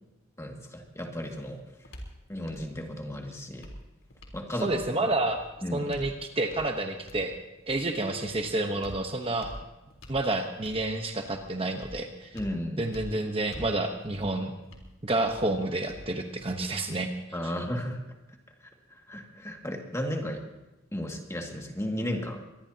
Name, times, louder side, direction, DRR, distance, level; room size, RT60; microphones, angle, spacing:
voice 1, 0.4-1.6 2.3-3.7 4.3-4.7 5.6-5.9 12.3-12.8 17.3-18.0 18.9-20.4 20.9-22.4, equal, 15° left, 1 dB, 2.1 m, -34 dB
sound 1, 0.8-16.8, equal, 85° left, 3.8 m, -48 dB
voice 2, 4.6-5.4 5.7-7.4 7.7-9.5 10.1-12.4 12.8-14.5 15.0-17.1, right 2 dB, 30° right, 4 dB, 1.0 m, -29 dB
24.5 x 19.5 x 2.9 m, 1.0 s
head